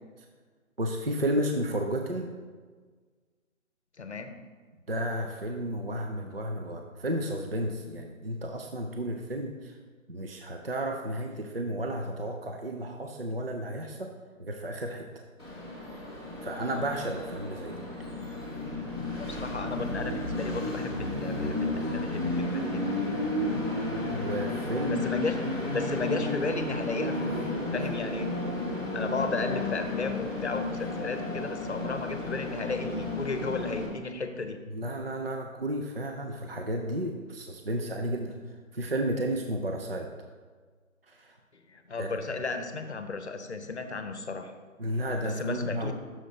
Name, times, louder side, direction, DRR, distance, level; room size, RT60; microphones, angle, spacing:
voice 1, 0.8-2.3 4.9-9.7 10.1-14.1 14.4-15.1 16.4-17.8 23.5-23.7 24.1-25.1 34.7-38.3 38.7-40.1 41.1-41.4 42.0-42.1 44.8-45.9, right 1 dB, 45° right, 3 dB, 0.5 m, -32 dB
voice 2, 4.0-4.4 19.2-22.9 24.9-25.4 25.7-28.3 28.9-34.6 41.7-44.5 45.2-45.9, left 3 dB, 55° left, 8 dB, 0.8 m, -34 dB
Train, 15.4-33.9, left 2 dB, 20° right, 1.1 m, -32 dB
7.6 x 6.5 x 4.0 m, 1.5 s
figure-of-eight pair, 175°, 41 cm